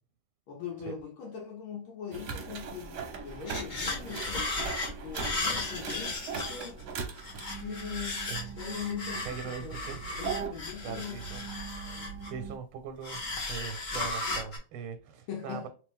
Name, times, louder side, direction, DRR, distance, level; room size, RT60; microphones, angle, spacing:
voice 1, 0.5-4.5 5.0-6.8 7.6-11.3 11.9-12.1 15.3-15.7, left 7 dB, 75° left, 1.6 m, -41 dB
sound 1, 2.1-12.6, right 5 dB, 65° right, 1.1 m, -40 dB
sound 2, 2.8-2.9 3.2-6.8 7.2-12.5 13.0-14.6, left 2 dB, 35° left, 0.8 m, -36 dB
voice 2, 9.2-10.1 10.8-11.4 11.7-15.7, right 7 dB, 90° right, 1.5 m, -41 dB
3.4 x 3.0 x 3.5 m
omnidirectional pair, 2.3 m